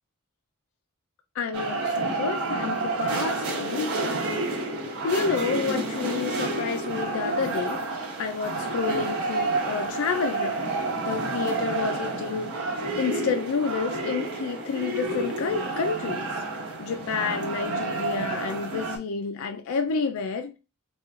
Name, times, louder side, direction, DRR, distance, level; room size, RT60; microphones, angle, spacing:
voice 1, 1.4-3.9 5.0-7.8 8.2-12.6 13.0-16.3 16.8-20.6, left 5 dB, 65° left, 0.4 m, -29 dB
sound 1, 1.5-19.0, right 2 dB, 75° right, 1.0 m, -29 dB
3.0 x 2.3 x 3.6 m
head